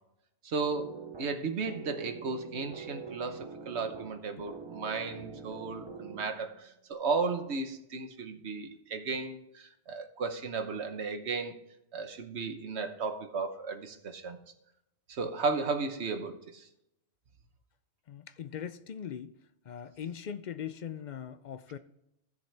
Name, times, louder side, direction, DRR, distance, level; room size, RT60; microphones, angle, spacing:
voice 1, 0.4-11.5 11.9-14.4 15.1-16.6, right 4 dB, 70° right, 1.2 m, -34 dB
sound 1, 0.6-6.6, right 5 dB, 30° right, 0.6 m, -45 dB
voice 2, 18.1-19.4 19.6-21.8, left 8 dB, 55° left, 0.5 m, -40 dB
15.5 x 6.8 x 3.4 m
omnidirectional pair, 1.2 m